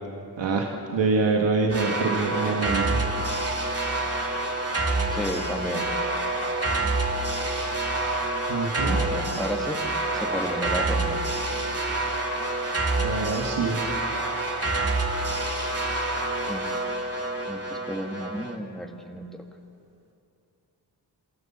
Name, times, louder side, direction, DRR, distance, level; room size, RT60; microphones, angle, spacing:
voice 1, 0.4-3.0 8.5-9.0 13.0-13.8, right 4 dB, 85° right, 0 dB, 1.8 m, -25 dB
sound 1, 1.7-18.6, right 2 dB, 35° right, 2.6 m, -27 dB
voice 2, 5.1-5.9 8.8-9.8 10.1-11.2 16.4-16.8 17.5-19.2, equal, ahead, 3 dB, 1.8 m, -32 dB
26.5 x 13.5 x 7.3 m, 2.7 s
cardioid pair, 55°, 43 cm